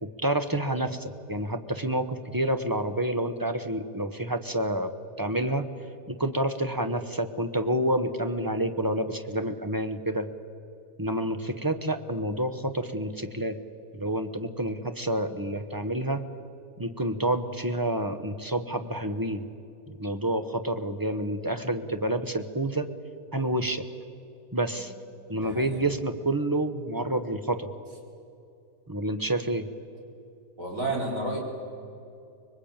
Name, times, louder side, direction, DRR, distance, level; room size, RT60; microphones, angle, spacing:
voice 1, 0.0-4.9 5.2-5.7 6.1-10.3 11.0-13.6 13.9-16.2 16.8-19.4 20.0-22.9 23.3-23.8 24.5-24.9 25.3-27.7 28.9-29.7, right 1 dB, 15° right, 8 dB, 0.7 m, -28 dB
voice 2, 25.4-25.8 30.6-31.4, right 2 dB, 45° right, -1 dB, 5.2 m, -31 dB
25.5 x 21.5 x 8.8 m, 2.6 s
omnidirectional pair, 1.9 m